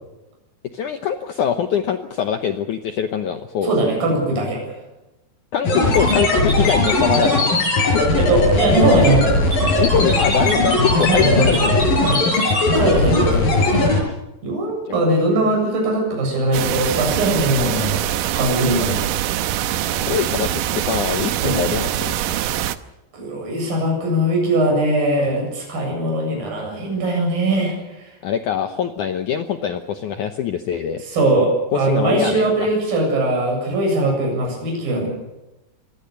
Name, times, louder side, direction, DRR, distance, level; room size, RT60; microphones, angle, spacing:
voice 1, 0.7-3.9 5.5-8.1 9.8-11.8 14.9-15.0 20.0-22.2 28.2-31.0 31.7-32.7, left 8 dB, 80° left, 7 dB, 1.7 m, -23 dB
voice 2, 3.6-4.7 8.2-9.3 11.0-11.7 12.0-12.2 12.8-13.6 14.4-18.1 18.4-19.1 21.4-21.6 23.1-27.8 31.1-35.1, right 1 dB, 55° right, 1 dB, 9.2 m, -20 dB
sound 1, 5.6-14.0, left 2 dB, 55° left, 7.5 m, -18 dB
sound 2, 16.5-22.8, right 12 dB, 85° right, 1.9 m, -23 dB
25.5 x 20.0 x 6.8 m, 0.99 s
omnidirectional pair, 5.1 m